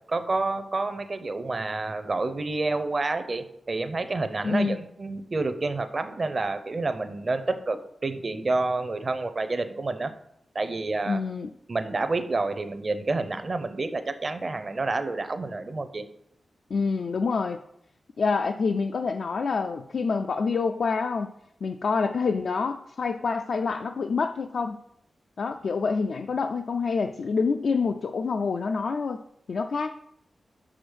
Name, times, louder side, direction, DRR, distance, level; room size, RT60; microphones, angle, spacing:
voice 1, 0.1-10.1 10.5-11.2 11.7-16.0, right 3 dB, 35° right, 9 dB, 0.5 m, -29 dB
voice 2, 4.4-4.8 11.1-11.5 16.7-17.6 18.2-21.3 21.6-24.8 25.4-29.2 29.5-29.9, left 4 dB, 60° left, 6 dB, 0.3 m, -27 dB
6.0 x 4.9 x 6.2 m, 0.75 s
wide cardioid pair, 180°, 0 cm